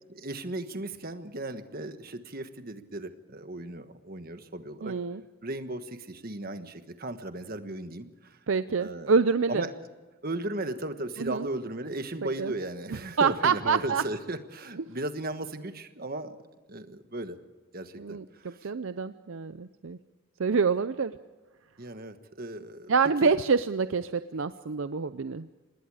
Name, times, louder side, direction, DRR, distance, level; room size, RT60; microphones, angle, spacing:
voice 1, 0.1-4.9 5.4-8.4 8.8-9.2 9.5-9.7 10.2-16.4 16.7-17.4 17.7-18.7 21.8-22.9 23.2-23.3, right 2 dB, 40° right, 9 dB, 1.4 m, -36 dB
voice 2, 4.8-5.2 8.5-9.7 11.2-11.5 12.4-12.5 13.2-14.0 18.0-20.0 20.4-21.1 22.9-25.5, right 5 dB, 65° right, 12 dB, 0.5 m, -26 dB
26.5 x 20.0 x 4.9 m, 1.2 s
head